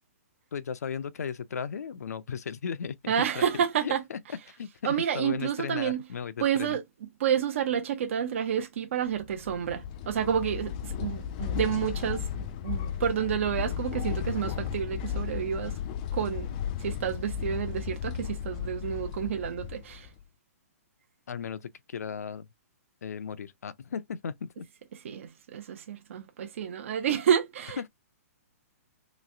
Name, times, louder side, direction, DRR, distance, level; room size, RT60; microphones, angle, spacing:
voice 1, 0.5-3.5 3.8-4.2 4.5-6.8 21.3-22.5 23.0-24.7 27.8-27.9, left 6 dB, 85° left, 0.5 m, -36 dB
voice 2, 3.1-4.0 4.8-6.0 6.4-6.8 7.2-15.7 16.1-16.5 16.8-20.1 25.0-27.8, right 8 dB, 55° right, 0.6 m, -29 dB
sound 1, 9.2-20.2, left 9 dB, 30° left, 0.4 m, -35 dB
3.1 x 3.0 x 2.6 m
hypercardioid pair, 160°, 8 cm